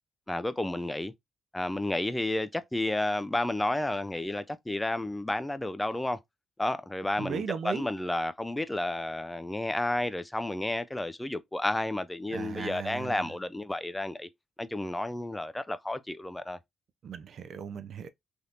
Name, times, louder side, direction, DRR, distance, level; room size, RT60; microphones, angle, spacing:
voice 1, 0.3-1.1 1.5-6.2 6.6-14.3 14.6-16.6, left 1 dB, 10° left, 0.3 m, -31 dB
voice 2, 7.2-7.9 12.3-13.3 17.0-18.1, right 7 dB, 60° right, 0.4 m, -36 dB
3.4 x 2.7 x 2.4 m
cardioid pair, 90°, 0 cm